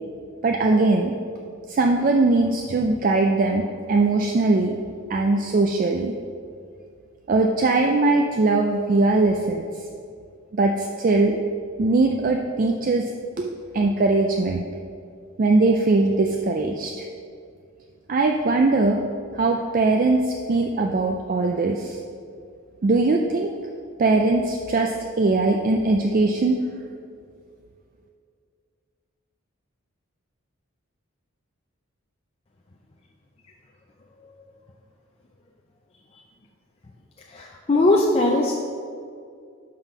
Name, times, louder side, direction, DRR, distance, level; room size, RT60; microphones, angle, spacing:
voice 1, 0.4-1.1 1.7-4.8 5.1-6.1 7.3-9.7 10.5-11.4 11.8-13.1 13.4-14.7 15.4-17.1 18.1-19.0 19.3-22.0 22.8-23.5 24.0-26.6, right 3 dB, 40° right, 2 dB, 0.3 m, -21 dB
voice 2, 37.4-38.6, left 2 dB, 30° left, 0 dB, 0.4 m, -19 dB
5.7 x 5.4 x 5.9 m, 2.3 s
head